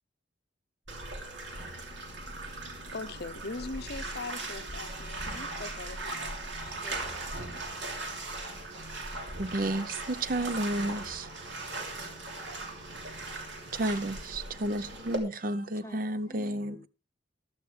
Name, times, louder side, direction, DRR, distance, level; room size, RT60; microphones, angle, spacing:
Bathtub (filling or washing), 0.9-15.2, right 2 dB, 65° right, 3.0 m, -39 dB
Wind instrument woodwind instrument, 2.8-14.6, right 2 dB, 90° right, 3.7 m, -61 dB
voice 1, 2.9-6.8, left 3 dB, 55° left, 0.7 m, -41 dB
voice 2, 6.8-7.6 11.6-11.8 15.8-16.9, left 1 dB, 15° left, 0.8 m, -51 dB
voice 3, 9.4-11.3 13.7-16.8, right 1 dB, 45° right, 0.7 m, -31 dB
15.0 x 12.0 x 3.3 m
head